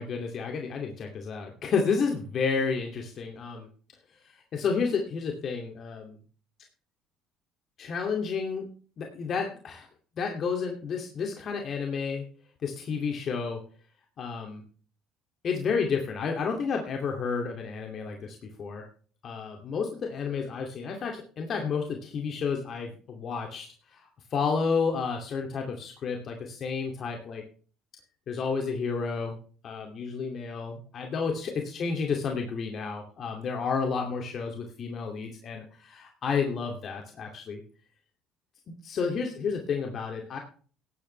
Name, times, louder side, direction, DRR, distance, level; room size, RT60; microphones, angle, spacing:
voice 1, 0.0-3.7 4.3-6.1 7.8-8.6 9.0-9.9 10.2-12.2 12.6-13.6 14.2-14.6 15.4-18.9 19.2-23.7 23.9-27.4 28.3-29.4 29.6-37.6 38.7-40.4, left 5 dB, 50° left, 2 dB, 2.4 m, -31 dB
17.0 x 11.0 x 3.3 m, 0.41 s
hypercardioid pair, 65°, 0 cm